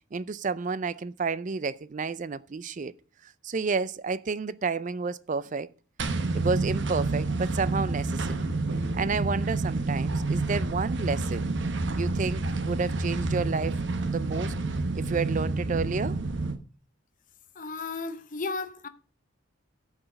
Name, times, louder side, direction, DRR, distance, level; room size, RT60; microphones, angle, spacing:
voice 1, 0.1-2.9 3.2-5.7 6.3-8.5 8.9-11.5 12.0-13.8 14.1-14.5 14.9-16.2, right 4 dB, 40° right, 0.4 m, -31 dB
sound 1, 6.0-16.6, right 3 dB, 60° right, 0.9 m, -29 dB
voice 2, 17.5-18.9, left 4 dB, 40° left, 0.9 m, -34 dB
12.5 x 4.9 x 6.4 m
head